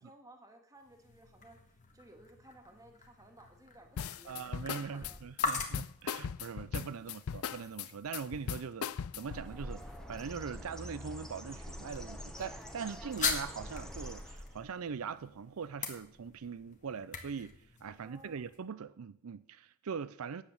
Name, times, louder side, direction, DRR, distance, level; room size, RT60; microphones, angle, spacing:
voice 1, 0.0-5.2 7.0-7.2 17.9-18.5, right 1 dB, 15° right, 1.8 m, -58 dB
sound 1, 0.8-18.6, left 4 dB, 35° left, 1.7 m, -43 dB
sound 2, 4.0-9.5, left 7 dB, 80° left, 0.4 m, -38 dB
voice 2, 4.2-20.4, right 6 dB, 80° right, 0.5 m, -42 dB
Bird, 9.2-14.7, equal, 5° left, 1.1 m, -45 dB
10.0 x 8.3 x 7.1 m
head